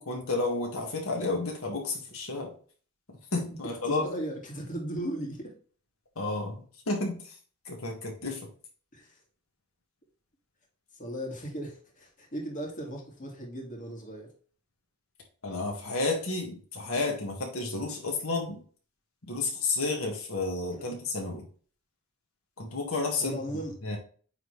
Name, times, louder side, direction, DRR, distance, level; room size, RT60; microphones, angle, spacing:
voice 1, 0.0-2.5 3.3-4.1 6.1-7.4 7.6-8.5 15.4-18.6 19.3-21.4 22.6-23.4 23.8-24.0, left 3 dB, 85° left, 0 dB, 1.8 m, -31 dB
voice 2, 3.8-5.5 8.9-9.2 10.9-14.3 23.2-23.7, right 1 dB, 40° left, -1 dB, 2.1 m, -37 dB
8.9 x 3.9 x 3.2 m, 0.42 s
head